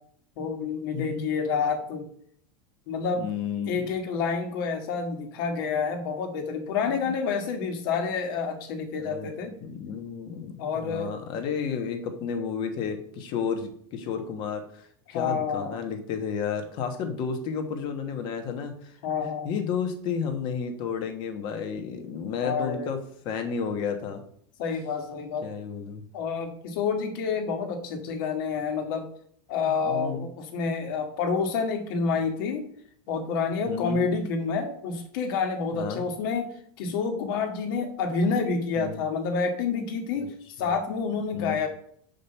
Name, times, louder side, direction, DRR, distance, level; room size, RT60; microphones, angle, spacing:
voice 1, 0.4-2.1 2.9-3.2 3.7-9.5 10.6-11.1 15.1-15.8 19.0-19.5 22.4-22.9 24.6-25.5 26.1-29.1 29.5-32.6 33.1-36.5 36.8-41.7, left 5 dB, 60° left, 4 dB, 1.9 m, -28 dB
voice 2, 3.2-3.9 6.9-7.1 9.0-9.3 9.6-18.9 19.2-23.0 23.2-24.2 25.4-26.0 29.8-30.3 33.7-34.0 35.7-36.0 38.8-39.0 40.2-40.3 40.6-40.7 41.3-41.6, left 6 dB, 35° left, 6 dB, 1.3 m, -32 dB
5.8 x 5.3 x 6.8 m, 0.62 s
supercardioid pair, 165°, 13 cm